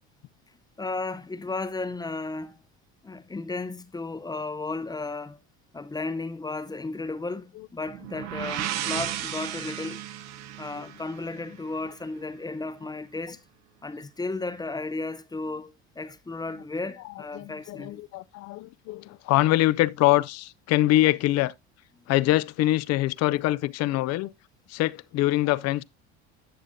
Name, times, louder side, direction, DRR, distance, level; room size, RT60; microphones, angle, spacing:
voice 1, 0.8-2.6 3.0-5.4 5.7-10.0 10.6-13.4 13.8-18.0, left 3 dB, 15° left, 0.7 m, -34 dB
sound 1, 7.9-11.7, right 11 dB, 60° right, 0.9 m, -34 dB
voice 2, 17.0-21.5 22.1-24.3 24.7-25.8, left 16 dB, 55° left, 0.5 m, -24 dB
11.0 x 6.9 x 2.6 m
supercardioid pair, 100°, 31 cm